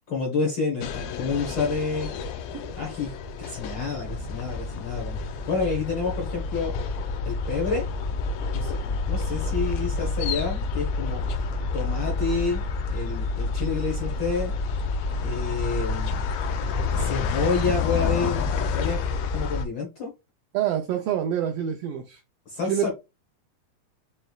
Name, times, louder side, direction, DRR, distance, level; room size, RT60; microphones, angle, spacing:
voice 1, 0.1-2.1 2.8-3.1 3.4-5.2 5.5-6.7 7.2-7.9 8.5-8.8 9.1-11.2 11.7-12.6 12.9-14.5 15.2-16.2 16.9-19.0 19.3-20.1 22.5-22.9, left 4 dB, 60° left, -1 dB, 1.2 m, -29 dB
sound 1, 0.8-19.6, left 4 dB, 90° left, 1.3 m, -28 dB
voice 2, 20.5-22.2 22.7-22.9, right 10 dB, 85° right, 2 dB, 1.4 m, -26 dB
5.4 x 3.0 x 2.3 m, 0.25 s
omnidirectional pair, 3.3 m